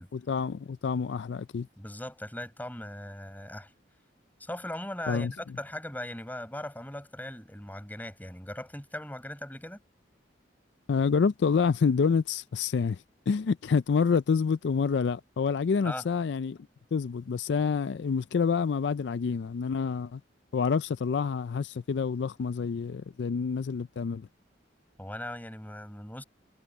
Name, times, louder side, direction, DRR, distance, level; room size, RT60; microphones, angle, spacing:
voice 1, 0.1-1.7 5.1-5.3 10.9-16.6 16.9-20.2 20.5-24.3, left 5 dB, 65° left, 0.4 m, -27 dB
voice 2, 1.8-3.7 4.4-9.8 15.8-16.0 25.0-26.2, left 1 dB, 10° left, 6.3 m, -39 dB
head